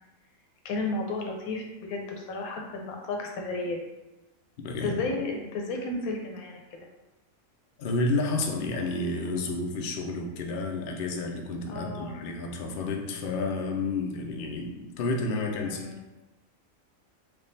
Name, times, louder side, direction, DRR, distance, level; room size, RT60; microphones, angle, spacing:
voice 1, 0.6-3.8 4.8-6.6 11.7-12.2 15.4-16.0, left 3 dB, 90° left, 1 dB, 1.1 m, -33 dB
voice 2, 4.6-5.0 7.8-15.9, left 2 dB, 60° left, 1 dB, 0.6 m, -30 dB
3.5 x 2.3 x 3.9 m, 1.1 s
omnidirectional pair, 1.5 m